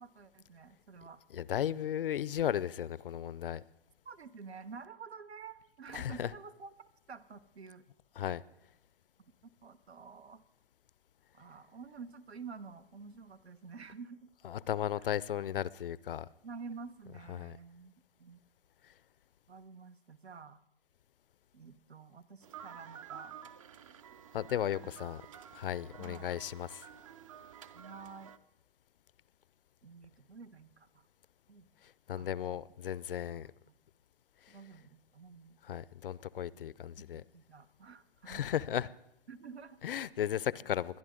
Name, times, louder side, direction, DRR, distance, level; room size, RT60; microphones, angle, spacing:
voice 1, 0.0-1.2 4.0-6.7 7.1-7.8 9.6-10.4 11.3-14.3 16.4-18.4 19.5-20.6 21.5-23.4 24.8-24.9 26.0-26.3 27.7-28.3 29.8-31.1 31.5-31.7 32.2-32.6 33.7-33.8 34.5-35.6 36.5-36.7 37.0-38.4 39.3-40.1, right 5 dB, 90° right, 1.2 m, -49 dB
voice 2, 1.3-3.6 5.9-6.3 8.2-8.4 14.4-16.3 17.3-17.6 24.3-25.2 25.5-26.9 32.1-33.5 35.7-37.2 38.3-38.9 39.8-41.0, left 10 dB, 60° left, 0.6 m, -35 dB
sound 1, 22.4-28.4, right 9 dB, 35° right, 0.6 m, -51 dB
22.0 x 10.5 x 3.8 m
hypercardioid pair, 150°, 31 cm